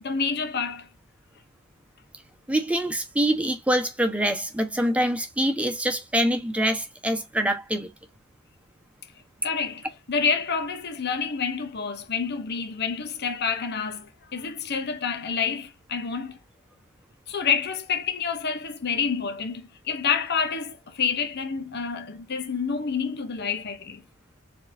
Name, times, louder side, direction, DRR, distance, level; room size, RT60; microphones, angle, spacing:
voice 1, 0.0-0.9 9.4-16.4 17.3-24.0, left 6 dB, 50° left, 0.8 m, -28 dB
voice 2, 2.5-7.9, right 1 dB, 5° right, 1.1 m, -25 dB
4.6 x 3.6 x 2.7 m
head